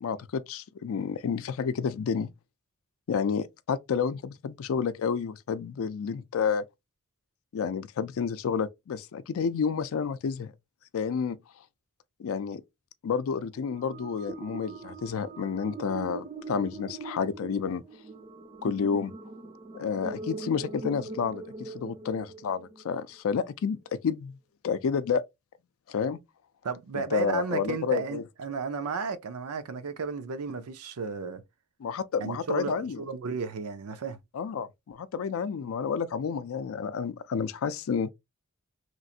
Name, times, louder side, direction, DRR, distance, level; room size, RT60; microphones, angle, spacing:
voice 1, 0.0-2.3 3.1-6.7 7.5-10.5 10.9-11.4 12.2-12.6 13.0-17.8 18.6-19.1 19.7-24.4 24.6-25.2 25.9-26.2 26.9-28.2 31.8-33.0 34.3-38.1, left 6 dB, 65° left, 0.4 m, -30 dB
sound 1, 13.6-22.9, right 3 dB, 25° right, 0.4 m, -41 dB
voice 2, 26.6-31.4 32.2-34.2, right 5 dB, 85° right, 0.5 m, -33 dB
3.1 x 2.5 x 2.6 m
head